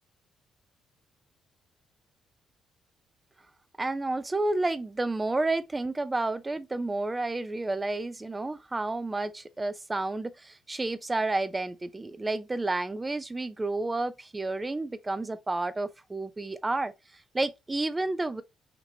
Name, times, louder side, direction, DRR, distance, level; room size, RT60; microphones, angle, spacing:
voice 1, 3.8-16.9 17.3-18.4, right 2 dB, 20° right, 0.5 m, -30 dB
5.1 x 2.9 x 2.7 m
cardioid pair, 90°, 0 cm